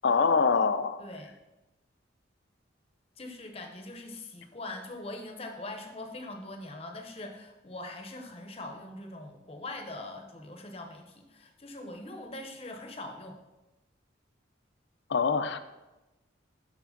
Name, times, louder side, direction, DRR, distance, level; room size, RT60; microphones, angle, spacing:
voice 1, 0.0-1.0 15.1-15.6, left 5 dB, 65° left, 10 dB, 0.5 m, -24 dB
voice 2, 1.0-1.3 3.2-13.4, left 2 dB, 30° left, 4 dB, 0.7 m, -42 dB
6.0 x 4.7 x 5.8 m, 1.0 s
head